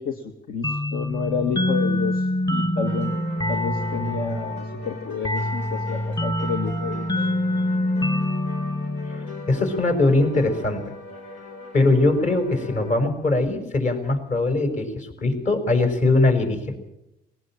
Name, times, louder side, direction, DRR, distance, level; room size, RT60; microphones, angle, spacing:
voice 1, 0.0-3.1 3.5-7.1, left 5 dB, 60° left, 6 dB, 2.0 m, -30 dB
sound 1, 0.6-10.0, left 1 dB, 20° left, 1.6 m, -26 dB
sound 2, 2.8-13.0, left 3 dB, 85° left, 3.9 m, -40 dB
voice 2, 9.1-10.8 11.7-16.8, left 2 dB, 45° left, 6 dB, 5.6 m, -21 dB
19.5 x 19.5 x 7.5 m, 0.86 s
cardioid pair, 110°, 17 cm